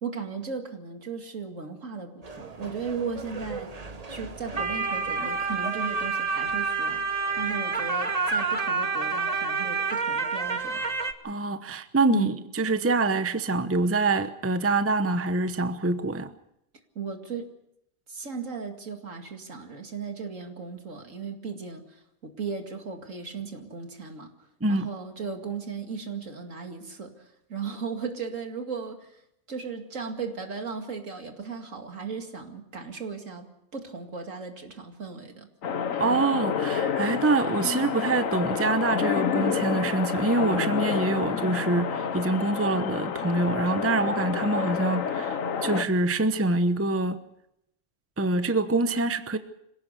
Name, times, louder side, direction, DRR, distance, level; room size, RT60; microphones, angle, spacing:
voice 1, 0.0-3.7 4.1-7.0 7.3-10.8 12.1-12.3 17.0-17.5 18.1-24.3 24.7-29.2 29.5-33.5 33.7-35.5, right 5 dB, 65° right, 2.6 m, -36 dB
sound 1, 2.2-11.1, right 4 dB, 30° right, 1.2 m, -29 dB
voice 2, 11.2-16.3 24.6-24.9 36.0-47.2 48.2-49.4, right 3 dB, 10° right, 0.8 m, -25 dB
sound 2, 35.6-45.8, left 7 dB, 70° left, 1.4 m, -29 dB
26.0 x 17.0 x 6.8 m
omnidirectional pair, 1.4 m